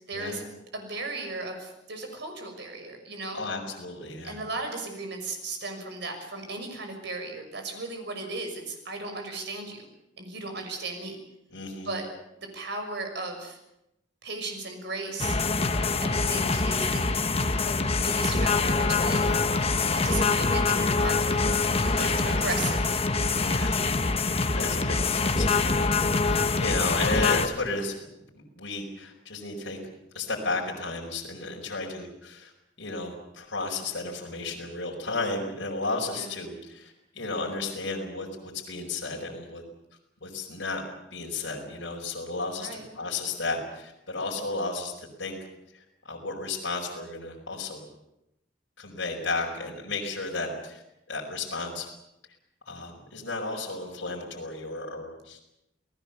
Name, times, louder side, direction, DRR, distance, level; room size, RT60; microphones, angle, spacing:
voice 1, 0.1-3.4 4.2-9.8 10.2-11.2 11.8-12.1 12.4-13.6 14.2-15.4 16.0-17.0 17.6-17.8 18.0-19.3 19.9-21.4 21.7-23.7 36.1-36.4 42.6-42.9, right 3 dB, 65° right, 5 dB, 6.2 m, -36 dB
voice 2, 3.3-4.4 11.5-11.9 22.0-22.7 23.4-23.9 24.5-25.8 26.1-27.9 28.3-29.8 30.1-32.5 32.8-39.6 40.2-40.8 41.1-45.4 45.7-47.9 48.8-50.8 51.1-51.8 52.6-55.4, left 3 dB, 70° left, -2 dB, 4.8 m, -33 dB
sound 1, 15.2-27.5, left 3 dB, 35° left, 1.2 m, -25 dB
28.5 x 18.5 x 7.0 m, 0.87 s
head